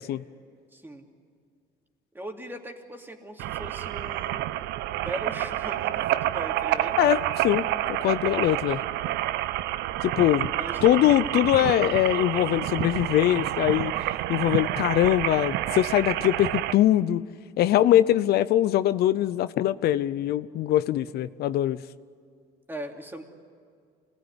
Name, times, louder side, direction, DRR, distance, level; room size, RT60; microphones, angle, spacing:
voice 1, 0.7-1.1 2.1-4.4 5.0-7.0 10.5-11.4 22.7-23.2, right 1 dB, 10° right, 2 dB, 3.0 m, -39 dB
sound 1, 3.4-16.7, right 14 dB, 85° right, 0.7 m, -29 dB
voice 2, 7.0-7.7 8.0-8.8 10.0-10.5 10.8-13.9 14.3-17.2 17.6-21.8, left 13 dB, 70° left, 14 dB, 0.7 m, -22 dB
26.5 x 19.0 x 9.8 m, 2.1 s
cardioid pair, 110°, 17 cm